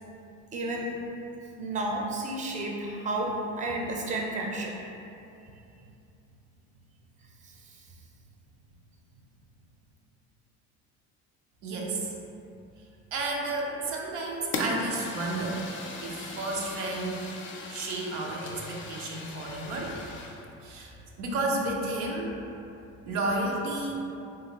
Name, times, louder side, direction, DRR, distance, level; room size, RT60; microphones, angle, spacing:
voice 1, 0.5-1.0 1.6-4.7 7.4-7.5, right 2 dB, 20° right, -1 dB, 0.4 m, -31 dB
voice 2, 11.6-12.1 13.1-15.6 16.0-17.3 17.7-20.0 20.6-22.4 23.0-23.9, right 2 dB, 90° right, -2 dB, 0.5 m, -32 dB
Fire, 14.5-20.4, left 2 dB, 35° left, 0.5 m, -38 dB
3.1 x 2.4 x 2.9 m, 2.8 s
supercardioid pair, 75°, 34 cm